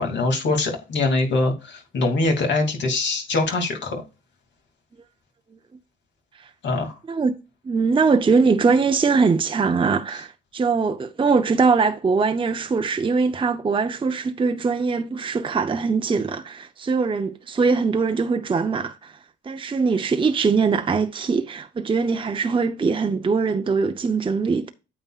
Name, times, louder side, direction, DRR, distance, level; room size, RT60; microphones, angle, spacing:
voice 1, 0.0-4.0 6.6-6.9, left 2 dB, 65° left, 2.6 m, -23 dB
voice 2, 7.6-19.1 19.4-24.7, right 4 dB, 25° right, 0.7 m, -22 dB
8.9 x 6.9 x 2.4 m
cardioid pair, 90°, 20 cm